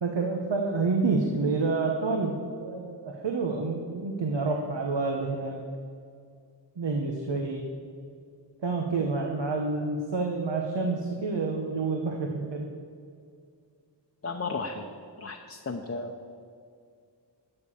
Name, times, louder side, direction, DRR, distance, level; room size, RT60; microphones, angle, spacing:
voice 1, 0.0-5.6 6.8-7.7 8.6-12.7, right 3 dB, 80° right, 2 dB, 1.1 m, -28 dB
voice 2, 14.2-14.9 15.2-16.1, left 3 dB, 30° left, 2 dB, 0.8 m, -34 dB
12.5 x 7.0 x 7.0 m, 2.3 s
wide cardioid pair, 75°, 43 cm